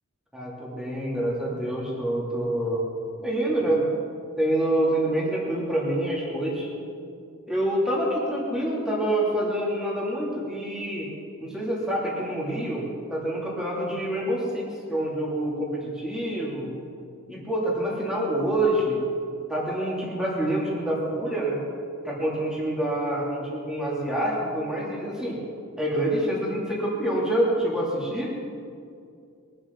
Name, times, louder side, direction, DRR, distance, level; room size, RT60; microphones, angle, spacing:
voice 1, 0.3-2.9 3.2-3.9 4.4-6.7 7.5-11.1 11.4-12.8 13.1-16.7 17.3-19.0 19.5-21.6 22.0-25.4 25.8-28.3, right 1 dB, 5° right, -5 dB, 3.1 m, -26 dB
22.0 x 12.0 x 4.1 m, 2.4 s
head